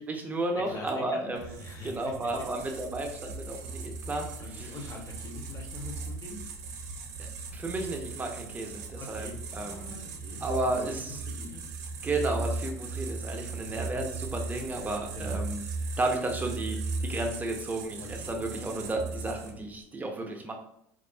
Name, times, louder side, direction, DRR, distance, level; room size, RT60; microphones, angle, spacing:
voice 1, 0.0-1.6 1.8-4.8 7.2-10.0 10.4-11.2 12.0-15.6 16.0-20.5, right 2 dB, 15° right, 2 dB, 0.5 m, -33 dB
voice 2, 0.7-2.3 2.7-2.8 4.4-6.4 9.0-11.7 15.1-15.4 18.0-18.3, left 2 dB, 35° left, 1 dB, 0.7 m, -44 dB
sound 1, 1.4-19.7, right 3 dB, 75° right, 0.4 m, -38 dB
2.4 x 2.3 x 2.2 m, 0.70 s
hypercardioid pair, 85°, 9 cm